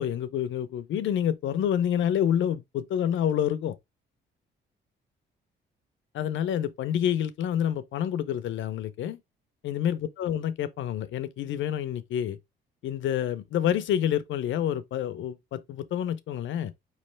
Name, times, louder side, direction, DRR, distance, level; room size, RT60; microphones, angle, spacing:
voice 1, 0.0-3.8 6.1-9.2 9.6-12.4 12.8-16.7, left 10 dB, 75° left, 0.6 m, -28 dB
4.8 x 3.2 x 3.1 m
cardioid pair, 90°, 20 cm